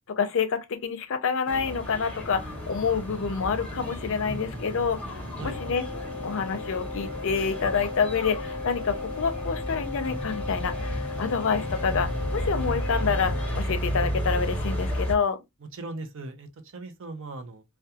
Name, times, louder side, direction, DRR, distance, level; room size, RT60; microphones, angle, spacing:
voice 1, 0.1-5.0 5.4-5.9 6.2-15.4, left 6 dB, 60° left, 0.5 m, -27 dB
sound 1, 1.5-15.1, equal, 5° left, 0.8 m, -33 dB
sound 2, 2.2-11.0, left 1 dB, 75° right, 1.0 m, -44 dB
Wind instrument woodwind instrument, 5.4-13.6, left 4 dB, 35° right, 1.0 m, -37 dB
voice 2, 15.6-17.6, right 3 dB, 60° right, 0.5 m, -39 dB
2.3 x 2.2 x 2.7 m
head